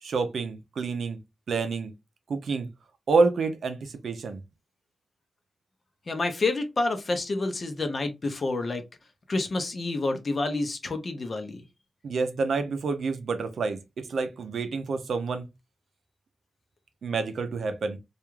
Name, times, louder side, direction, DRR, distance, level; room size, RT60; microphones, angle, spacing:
voice 1, 0.0-1.2 1.5-1.9 2.3-2.7 3.1-4.4 12.0-15.5 17.0-18.0, right 4 dB, 80° right, 0.5 m, -28 dB
voice 2, 6.1-8.8 9.3-11.6, left 2 dB, 45° left, 0.6 m, -28 dB
2.4 x 2.3 x 3.0 m
cardioid pair, 85°, 0 cm